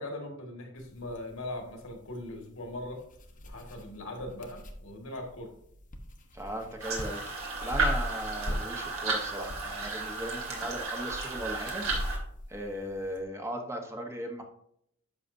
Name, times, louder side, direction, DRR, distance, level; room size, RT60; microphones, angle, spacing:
voice 1, 0.0-3.0 3.4-5.5, left 1 dB, 70° left, 3 dB, 1.9 m, -40 dB
sound 1, 0.8-13.2, equal, 40° left, 0.9 m, -41 dB
voice 2, 6.3-7.3 7.6-11.9 12.5-14.4, right 1 dB, 15° right, 3 dB, 1.0 m, -37 dB
sound 2, 6.8-12.2, right 3 dB, 75° right, 2.4 m, -33 dB
10.5 x 6.4 x 2.7 m, 0.71 s
head